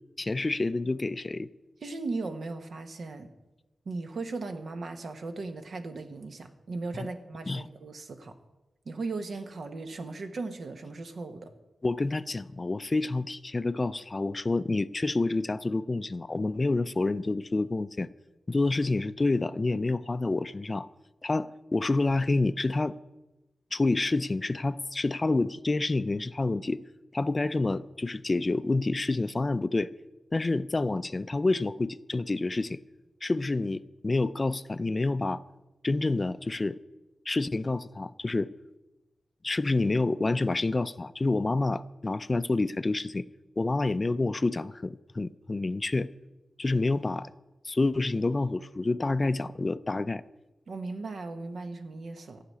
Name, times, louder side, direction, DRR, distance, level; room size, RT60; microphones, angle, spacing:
voice 1, 0.2-1.5 6.9-7.1 7.5-7.7 11.8-18.1 18.5-20.9 21.2-23.0 23.7-26.8 27.1-29.9 30.3-32.8 33.2-35.4 35.8-36.8 37.3-38.5 39.4-43.3 43.6-46.1 46.6-47.3 47.6-50.2, left 2 dB, 30° left, 15 dB, 0.4 m, -28 dB
voice 2, 1.8-3.3 3.8-8.3 8.8-11.5 50.7-52.4, right 3 dB, 70° right, 7 dB, 1.3 m, -37 dB
14.5 x 5.9 x 9.6 m, 1.0 s
wide cardioid pair, 90°, 0 cm